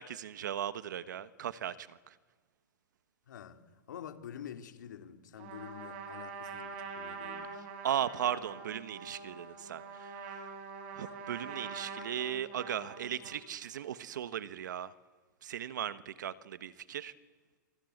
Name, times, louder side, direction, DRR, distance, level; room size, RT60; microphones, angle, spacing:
voice 1, 0.0-2.0 7.8-10.5 11.0-14.9 15.4-17.1, right 10 dB, 75° right, 14 dB, 1.4 m, -37 dB
voice 2, 3.3-7.5, left 9 dB, 75° left, 7 dB, 3.2 m, -47 dB
Trumpet, 5.4-13.5, right 4 dB, 40° right, 4.9 m, -45 dB
27.0 x 26.5 x 8.0 m, 1.4 s
supercardioid pair, 170°, 10 cm